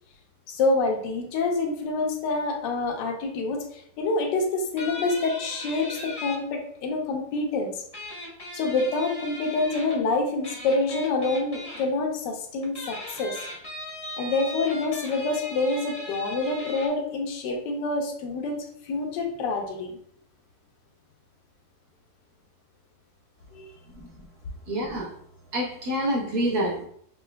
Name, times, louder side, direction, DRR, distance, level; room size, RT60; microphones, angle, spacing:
voice 1, 0.5-7.8 8.5-13.4 14.2-19.9 23.5-23.7, left 3 dB, 75° left, 1.3 m, -27 dB
sound 1, 4.8-6.4 7.9-10.0 10.4-11.8 12.6-16.9, left 1 dB, 20° left, 0.8 m, -38 dB
voice 2, 24.7-25.1 25.5-26.9, equal, 60° right, 1.6 m, -27 dB
5.4 x 2.9 x 2.2 m
omnidirectional pair, 2.0 m